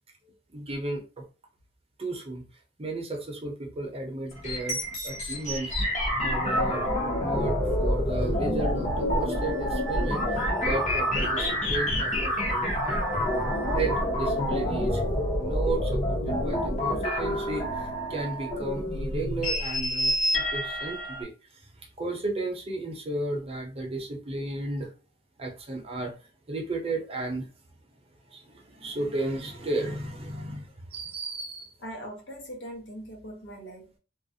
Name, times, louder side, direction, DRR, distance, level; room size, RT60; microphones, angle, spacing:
voice 1, 0.5-1.2 2.0-2.5 2.8-5.7 6.2-6.9 7.2-13.1 13.7-15.0 15.4-21.6 22.0-24.9 25.4-26.1 26.5-27.5 28.3-31.7, right 2 dB, 30° right, 0.6 m, -34 dB
sound 1, 4.3-21.2, left 1 dB, 40° left, 0.8 m, -27 dB
Wind instrument woodwind instrument, 9.3-14.1, right 6 dB, 85° right, 0.6 m, -41 dB
voice 2, 31.8-34.0, equal, 70° left, 0.9 m, -41 dB
2.4 x 2.0 x 2.6 m
head